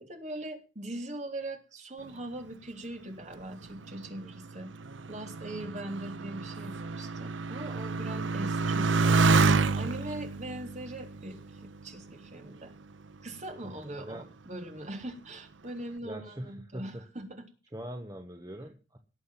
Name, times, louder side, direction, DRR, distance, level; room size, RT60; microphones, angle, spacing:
voice 1, 0.0-4.7 5.1-12.7 13.2-17.3, right 1 dB, 40° right, 4 dB, 3.5 m, -41 dB
Motorcycle, 3.4-12.4 13.1-13.7, right 4 dB, 85° right, 0.8 m, -29 dB
voice 2, 5.6-6.0 13.6-14.2 16.0-17.0 17.7-19.0, right 1 dB, 20° right, 5 dB, 1.4 m, -43 dB
18.5 x 8.0 x 5.8 m, 0.35 s
head